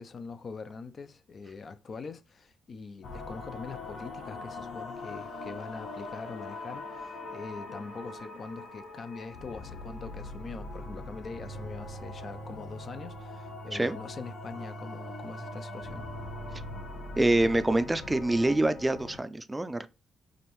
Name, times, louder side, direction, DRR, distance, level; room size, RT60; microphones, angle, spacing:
voice 1, 0.0-16.1, left 4 dB, 45° left, 0.5 m, -43 dB
sound 1, 3.0-19.2, left 3 dB, 70° left, 1.1 m, -42 dB
sound 2, 11.3-16.9, right 4 dB, 90° right, 1.0 m, -45 dB
voice 2, 17.2-19.9, right 2 dB, 15° right, 0.4 m, -26 dB
4.9 x 2.6 x 3.1 m
cardioid pair, 90°, 0 cm